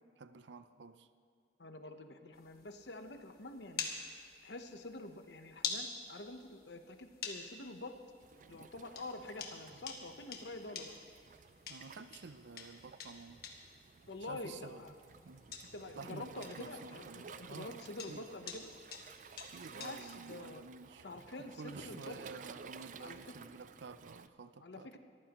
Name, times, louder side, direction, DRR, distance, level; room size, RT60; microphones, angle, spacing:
voice 1, 0.2-1.1 11.7-13.4 14.3-14.8 15.2-15.4 16.0-17.8 18.1-18.2 19.5-21.0 21.4-25.0, right 4 dB, 85° right, 12 dB, 0.6 m, -50 dB
voice 2, 1.6-3.9 4.4-8.0 8.5-10.9 14.1-15.0 15.7-18.7 19.7-20.6 21.0-22.2 23.0-23.2 24.6-25.0, left 2 dB, 75° left, 7 dB, 1.0 m, -47 dB
sound 1, 2.3-20.2, left 5 dB, 55° left, 1.6 m, -48 dB
Waves surf, 8.2-24.3, right 6 dB, 45° right, 0.4 m, -55 dB
23.0 x 14.5 x 3.1 m, 2.4 s
head